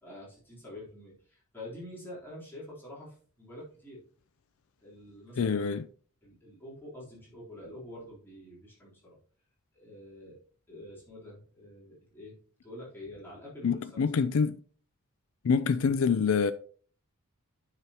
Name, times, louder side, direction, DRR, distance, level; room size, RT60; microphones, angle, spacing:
voice 1, 0.0-4.0 4.8-5.7 6.2-9.2 9.7-10.4 10.7-12.4 12.6-14.2, left 1 dB, 10° left, 3.6 m, -47 dB
voice 2, 5.4-5.8 13.6-14.6 15.4-16.5, left 5 dB, 70° left, 0.4 m, -26 dB
9.8 x 6.1 x 2.9 m
head